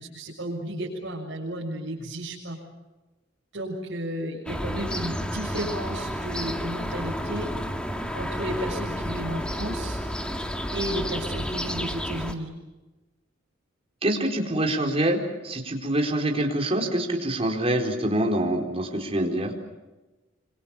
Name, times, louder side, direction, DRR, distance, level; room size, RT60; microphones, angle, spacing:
voice 1, 0.0-2.6 3.5-7.5 8.1-10.0 10.7-12.5, right 1 dB, 65° right, -5 dB, 7.1 m, -33 dB
sound 1, 4.5-12.3, equal, 5° left, 1.9 m, -31 dB
voice 2, 14.0-19.5, right 1 dB, 30° right, 2 dB, 4.2 m, -25 dB
27.5 x 26.0 x 7.2 m, 1.1 s
head